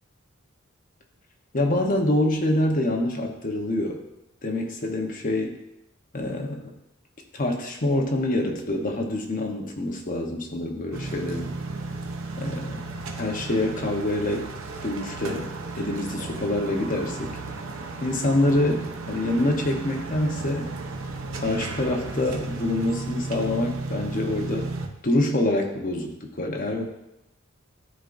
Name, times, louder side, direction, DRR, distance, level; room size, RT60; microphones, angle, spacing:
voice 1, 1.5-4.0 4.4-5.6 6.1-6.7 7.3-11.5 12.4-12.8 13.2-14.5 14.8-15.5 15.7-17.4 18.0-20.8 21.3-24.7 25.0-26.8, left 1 dB, 40° left, 1 dB, 0.9 m, -26 dB
sound 1, 10.9-24.9, right 3 dB, 90° right, 0.7 m, -34 dB
11.5 x 3.8 x 2.6 m, 0.88 s
head